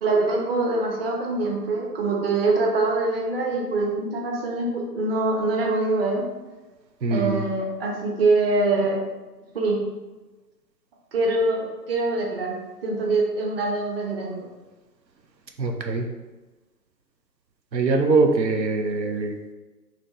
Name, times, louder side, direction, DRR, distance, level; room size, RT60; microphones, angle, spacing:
voice 1, 0.0-4.7 4.9-6.2 7.1-9.0 9.5-9.8 11.1-12.5 12.8-14.5, right 3 dB, 35° right, -1 dB, 1.0 m, -24 dB
voice 2, 7.0-7.4 15.6-16.1 17.7-19.5, right 3 dB, 85° right, 3 dB, 0.7 m, -23 dB
4.9 x 2.9 x 3.6 m, 1.2 s
figure-of-eight pair, 135°, 50 cm